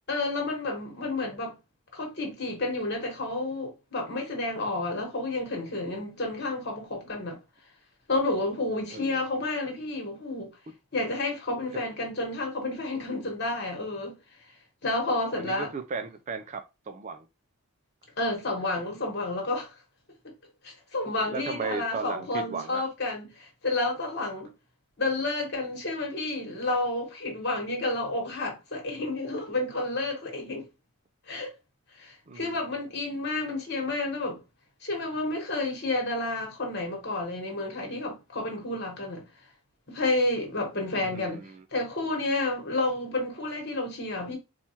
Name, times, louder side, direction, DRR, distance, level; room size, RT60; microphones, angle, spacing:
voice 1, 0.1-1.5 1.9-7.4 8.1-10.5 10.9-14.1 14.8-15.7 18.2-19.7 20.6-24.5 25.0-30.6 31.3-31.5 32.0-34.4 34.8-39.2 39.9-41.4 41.7-44.4, left 2 dB, 50° left, 1.3 m, -30 dB
voice 2, 8.9-9.2 15.0-17.3 21.2-22.9 32.3-32.7 41.0-41.6, right 4 dB, 35° right, 0.3 m, -36 dB
4.3 x 2.3 x 2.8 m
head